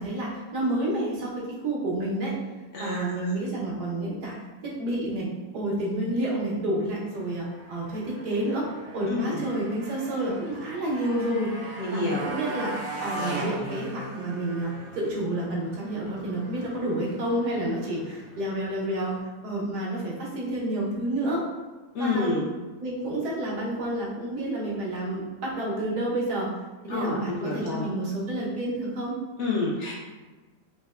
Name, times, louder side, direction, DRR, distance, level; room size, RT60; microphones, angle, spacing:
voice 1, 0.0-2.3 2.8-4.3 4.6-8.7 8.9-11.5 11.9-12.7 13.0-21.4 22.0-22.4 22.8-26.5 26.8-29.2, right 1 dB, 90° right, -5 dB, 1.4 m, -29 dB
voice 2, 2.7-3.3 9.1-9.4 11.8-12.3 21.9-22.5 26.9-27.9 29.4-29.9, left 3 dB, 70° left, -4 dB, 0.7 m, -28 dB
Motorcycle, 7.1-19.2, right 1 dB, 65° right, 0.8 m, -39 dB
5.1 x 2.1 x 2.3 m, 1.2 s
omnidirectional pair, 1.6 m